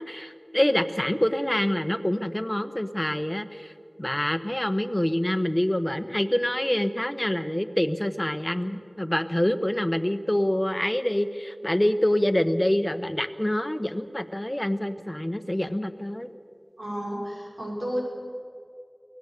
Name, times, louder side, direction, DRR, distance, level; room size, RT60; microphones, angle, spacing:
voice 1, 0.0-3.7 4.0-16.3, left 1 dB, 20° left, 9 dB, 1.1 m, -26 dB
voice 2, 16.8-18.0, equal, 80° right, -3 dB, 6.2 m, -31 dB
23.5 x 18.0 x 6.7 m, 2.4 s
wide cardioid pair, 40°, 0 cm